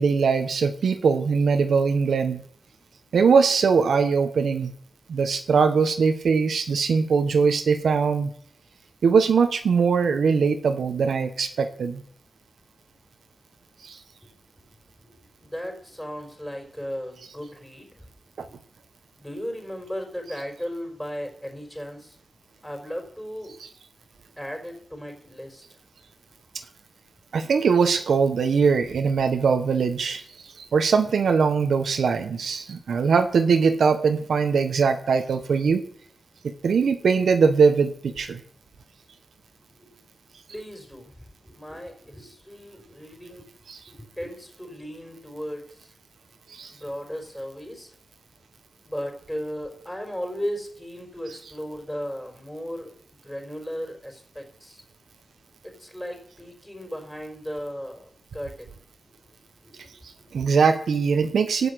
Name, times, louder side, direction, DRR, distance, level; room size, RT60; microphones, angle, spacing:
voice 1, 0.0-2.4 3.1-4.7 5.1-8.3 9.0-12.0 13.8-14.0 18.4-18.5 27.3-30.2 30.7-35.8 36.6-38.4 46.5-46.7 60.3-61.7, right 5 dB, 90° right, 7 dB, 1.2 m, -21 dB
voice 2, 15.0-18.1 18.5-18.6 19.2-22.2 22.6-23.6 24.4-25.6 39.7-40.0 40.5-43.5 43.9-45.9 46.7-47.9 48.8-54.8 55.6-58.8 59.6-60.5, equal, 5° left, 2 dB, 4.7 m, -36 dB
14.0 x 8.4 x 8.4 m, 0.62 s
wide cardioid pair, 90°, 0 cm